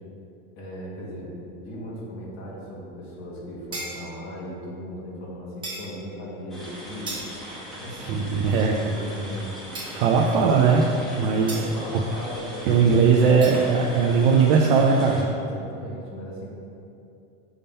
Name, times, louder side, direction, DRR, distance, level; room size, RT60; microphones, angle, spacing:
voice 1, 0.6-7.2 7.7-8.1 8.7-9.7 10.2-10.6 11.5-13.7 14.2-14.6 15.4-16.5, equal, 40° left, -5 dB, 1.6 m, -37 dB
sound 1, 3.7-4.3 5.6-5.9 7.1-7.6 9.7-10.2 11.5-11.8 13.4-13.6, right 2 dB, 15° right, 1.2 m, -36 dB
sound 2, 6.5-15.2, equal, ahead, 1.0 m, -40 dB
voice 2, 8.0-9.1 9.9-10.9 11.2-11.6 11.9-12.0 12.7-15.2, right 5 dB, 60° right, -1 dB, 0.6 m, -19 dB
7.0 x 3.7 x 5.3 m, 2.6 s
supercardioid pair, 165°, 31 cm